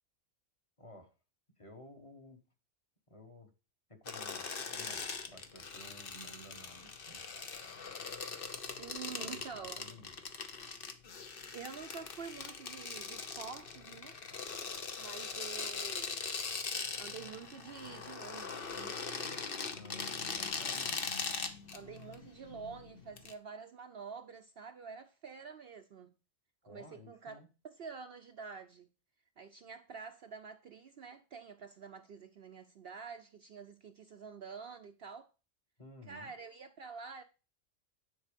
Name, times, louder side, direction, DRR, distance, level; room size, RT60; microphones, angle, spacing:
voice 1, 0.8-1.1 1.6-2.4 3.1-3.5 3.9-7.2 9.2-10.2 19.7-21.0 26.6-27.5 35.8-36.4, left 1 dB, 25° left, 1.4 m, -54 dB
sound 1, 4.1-23.3, left 5 dB, 45° left, 1.1 m, -41 dB
voice 2, 8.5-9.8 11.5-14.2 15.0-16.2 17.0-19.3 21.7-26.1 26.7-28.9 29.4-35.3 36.1-37.2, right 6 dB, 55° right, 0.8 m, -48 dB
10.0 x 4.4 x 5.1 m
omnidirectional pair, 1.4 m